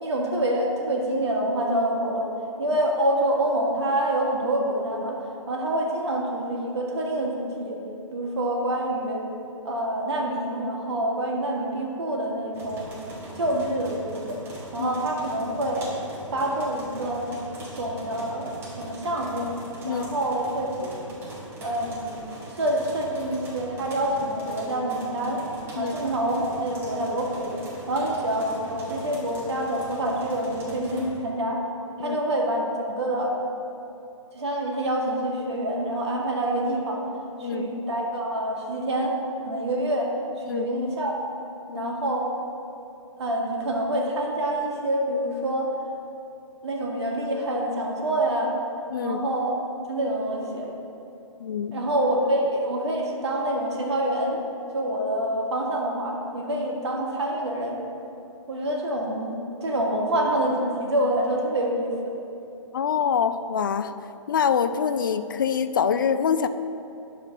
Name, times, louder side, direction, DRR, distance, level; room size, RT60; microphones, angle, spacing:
voice 1, 0.0-2.3 2.6-7.8 8.1-9.2 9.7-13.1 13.4-14.4 14.7-15.9 16.3-17.3 17.7-18.5 18.8-19.5 19.9-20.9 21.6-22.2 22.5-25.4 25.8-27.6 27.9-31.6 32.0-33.4 34.3-37.0 37.4-39.2 39.5-40.1 40.5-41.2 41.7-42.3 43.2-45.7 46.6-48.5 49.0-49.6 49.9-50.7 51.7-54.4 54.7-57.8 58.5-61.9, right 1 dB, 55° right, -1 dB, 1.7 m, -26 dB
sound 1, 12.5-31.1, right 1 dB, 15° right, 1.4 m, -41 dB
voice 2, 37.4-37.7 40.5-40.7 41.7-41.9 48.9-49.2 51.4-51.8 62.7-63.9 64.3-66.5, left 7 dB, 40° left, 11 dB, 0.4 m, -25 dB
10.5 x 6.8 x 3.8 m, 2.8 s
figure-of-eight pair, 130°, 17 cm